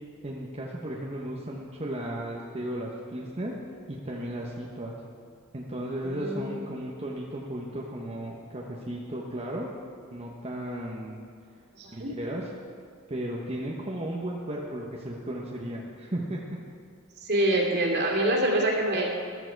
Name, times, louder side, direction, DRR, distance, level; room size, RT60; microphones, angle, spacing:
voice 1, 0.2-3.5 3.9-5.0 5.5-9.7 10.1-11.2 11.9-12.5 13.1-16.4, right 1 dB, 30° right, -3 dB, 1.2 m, -35 dB
voice 2, 6.0-6.6 11.7-12.1 17.2-19.1, right 1 dB, 55° right, -1 dB, 2.8 m, -26 dB
14.5 x 13.0 x 4.7 m, 2.4 s
head